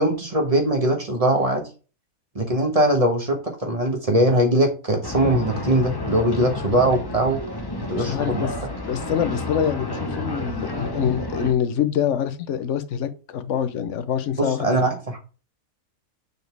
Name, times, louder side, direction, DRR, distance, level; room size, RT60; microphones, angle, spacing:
voice 1, 0.0-1.7 2.3-7.4 7.9-8.5 14.4-15.2, right 1 dB, 25° right, 1.3 m, -21 dB
sound 1, 5.0-11.5, left 2 dB, 20° left, 0.7 m, -30 dB
voice 2, 8.0-8.5 8.8-14.8, left 9 dB, 60° left, 1.0 m, -25 dB
6.9 x 4.2 x 3.4 m
omnidirectional pair, 1.6 m